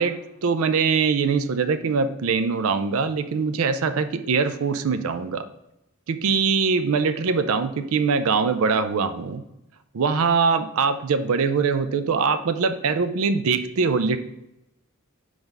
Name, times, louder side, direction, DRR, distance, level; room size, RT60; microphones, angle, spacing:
voice 1, 0.0-5.4 6.1-9.4 9.9-14.2, right 5 dB, 70° right, 10 dB, 0.4 m, -22 dB
4.6 x 3.9 x 5.3 m, 0.85 s
head